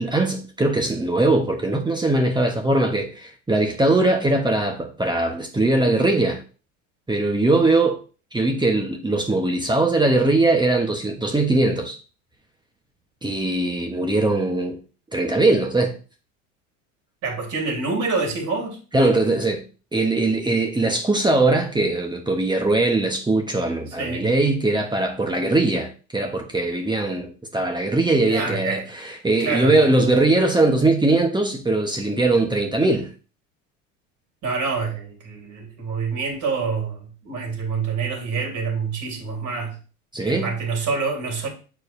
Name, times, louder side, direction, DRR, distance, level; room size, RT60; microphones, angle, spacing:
voice 1, 0.0-6.4 7.1-8.0 8.3-12.0 13.2-14.8 15.1-16.0 18.9-19.6 19.9-33.1 40.1-40.5, right 2 dB, 10° right, 1.1 m, -21 dB
voice 2, 17.2-18.8 24.0-24.3 28.2-28.9 29.4-29.8 34.4-39.8 40.2-41.5, right 4 dB, 50° right, 3.0 m, -27 dB
8.0 x 4.6 x 2.6 m
hypercardioid pair, 80°, 38 cm